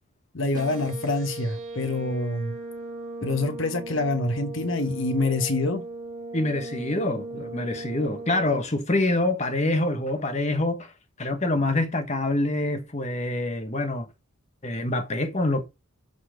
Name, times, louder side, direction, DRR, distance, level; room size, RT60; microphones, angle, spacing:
voice 1, 0.3-2.5 3.2-5.8, left 2 dB, 60° left, 1.2 m, -26 dB
sound 1, 0.5-8.6, right 2 dB, 35° right, 2.2 m, -37 dB
voice 2, 6.3-10.9 11.2-14.1 14.6-15.6, left 2 dB, 30° left, 1.3 m, -26 dB
11.5 x 4.3 x 5.2 m
head